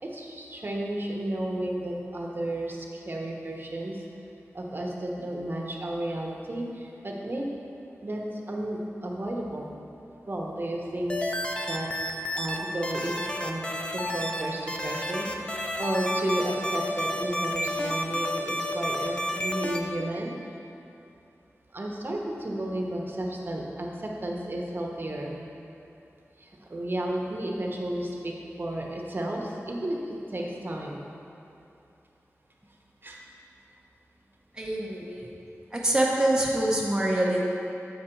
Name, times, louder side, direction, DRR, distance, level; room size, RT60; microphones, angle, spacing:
voice 1, 0.0-4.0 4.5-7.5 8.0-9.7 10.3-11.2 11.7-13.6 13.9-20.3 21.7-25.4 26.4-28.3 28.6-31.0 33.0-33.2, right 1 dB, 40° right, -1 dB, 1.0 m, -32 dB
sound 1, 11.1-12.6 12.8-14.4 14.7-19.8, left 1 dB, 20° left, 0.6 m, -30 dB
voice 2, 34.5-35.3 35.7-37.4, right 1 dB, 15° right, -4 dB, 0.9 m, -25 dB
7.4 x 5.0 x 4.4 m, 2.7 s
wide cardioid pair, 70°, 5 cm